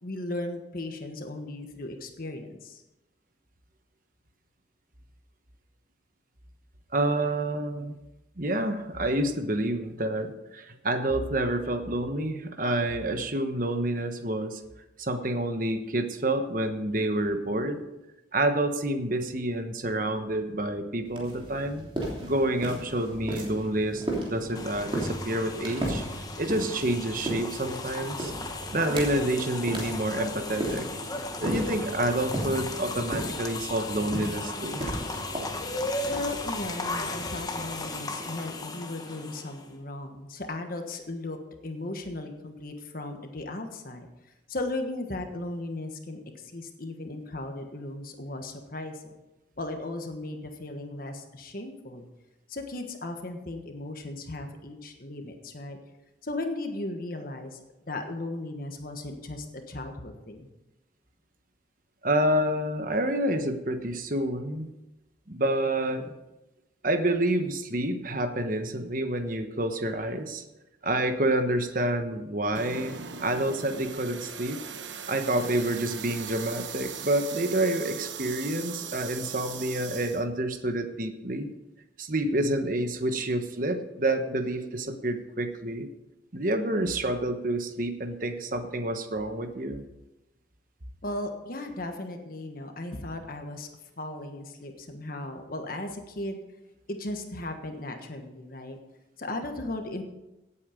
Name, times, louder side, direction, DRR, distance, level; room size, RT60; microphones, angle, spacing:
voice 1, 0.0-2.8 36.1-41.4 41.6-44.1 44.5-49.1 49.6-52.1 52.5-55.8 56.2-60.5 91.0-93.7 94.0-96.4 96.9-98.8 99.2-100.0, left 2 dB, 50° left, 5 dB, 1.4 m, -36 dB
voice 2, 6.9-8.0 8.4-14.6 15.0-17.8 18.3-21.8 22.2-26.1 26.4-28.3 28.7-30.9 31.4-34.8 62.0-64.7 65.3-66.1 66.8-70.4 70.8-72.9 73.2-74.6 75.1-81.5 82.0-85.9 86.3-89.8, right 1 dB, 45° right, 7 dB, 1.2 m, -28 dB
Passos de salto, 21.0-38.6, right 1 dB, 30° right, 3.1 m, -36 dB
sound 1, 24.5-39.7, left 2 dB, 20° left, 1.1 m, -36 dB
sound 2, 72.5-80.2, right 7 dB, 80° right, 1.1 m, -39 dB
17.0 x 8.6 x 5.1 m, 0.98 s
head